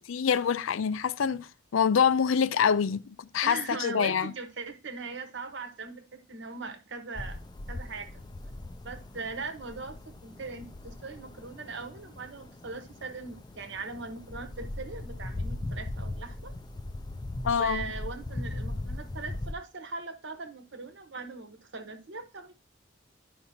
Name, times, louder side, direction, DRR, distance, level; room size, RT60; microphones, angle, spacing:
voice 1, 0.1-4.3 17.4-17.8, left 7 dB, 85° left, 0.4 m, -26 dB
voice 2, 3.4-7.4 7.7-8.1 8.8-16.5 17.6-22.5, right 4 dB, 65° right, 1.1 m, -40 dB
sound 1, 7.1-19.5, left 2 dB, 20° left, 0.4 m, -39 dB
11.0 x 5.3 x 2.8 m
head